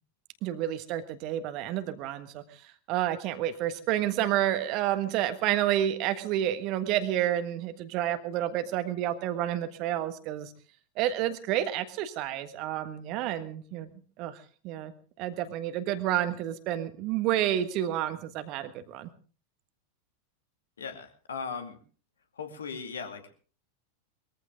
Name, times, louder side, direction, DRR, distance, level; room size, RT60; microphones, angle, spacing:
voice 1, 0.4-10.5 10.9-13.9 14.2-19.1, right 12 dB, 40° right, 10 dB, 1.4 m, -30 dB
voice 2, 20.8-21.8 22.4-23.3, left 5 dB, 70° left, 6 dB, 2.3 m, -38 dB
21.0 x 14.5 x 3.8 m, 0.40 s
figure-of-eight pair, 90°, 0 cm